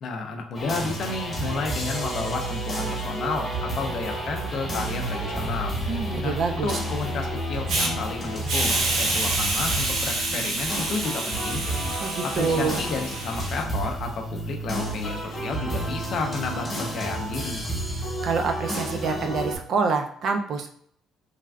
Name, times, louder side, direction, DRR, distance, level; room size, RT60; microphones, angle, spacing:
voice 1, 0.0-5.8 6.2-11.6 12.2-17.7, left 4 dB, 45° left, 3 dB, 0.4 m, -31 dB
sound 1, 0.5-19.6, right 1 dB, 20° left, 0.9 m, -31 dB
voice 2, 5.9-6.7 12.0-12.8 18.2-20.7, right 5 dB, 50° right, 5 dB, 0.4 m, -26 dB
Hiss, 7.7-7.9 8.5-13.6, right 2 dB, 70° right, 0.8 m, -28 dB
3.2 x 2.3 x 2.3 m, 0.64 s
cardioid pair, 160°, 0 cm